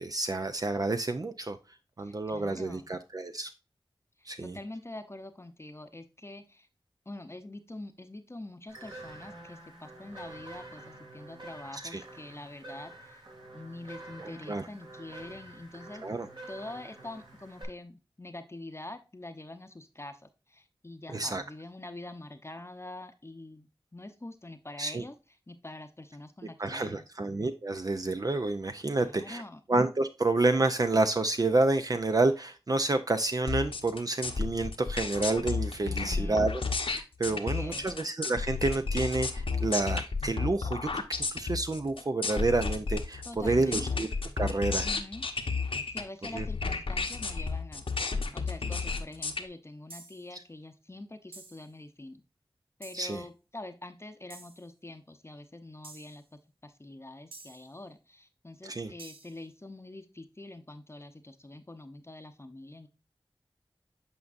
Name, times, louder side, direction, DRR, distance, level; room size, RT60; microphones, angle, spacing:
voice 1, 0.0-1.6 2.0-3.5 4.3-4.6 11.7-12.0 14.2-14.7 16.0-16.3 21.1-21.4 24.8-25.0 26.6-29.4 29.7-44.1 44.4-44.9 46.3-46.5 52.9-53.2 58.6-58.9, right 2 dB, 45° right, 8 dB, 0.5 m, -29 dB
voice 2, 2.0-2.9 4.2-6.7 7.1-13.2 13.5-16.0 16.5-20.2 20.5-25.1 25.5-27.0 29.0-29.6 35.8-36.5 37.2-37.9 43.2-44.1 44.8-45.3 45.9-52.2 52.8-56.2 56.6-62.9, left 2 dB, 30° left, 7 dB, 0.7 m, -45 dB
sound 1, 8.7-17.6, right 2 dB, 60° right, 2.8 m, -48 dB
sound 2, 33.5-49.4, left 4 dB, 80° left, 1.0 m, -32 dB
sound 3, 49.9-50.3 51.3-51.7 52.8-53.2 54.3-54.6 55.8-56.2 57.3-57.7 59.0-59.4, right 3 dB, 85° right, 1.0 m, -49 dB
8.4 x 5.2 x 2.5 m, 0.29 s
wide cardioid pair, 55°, 9 cm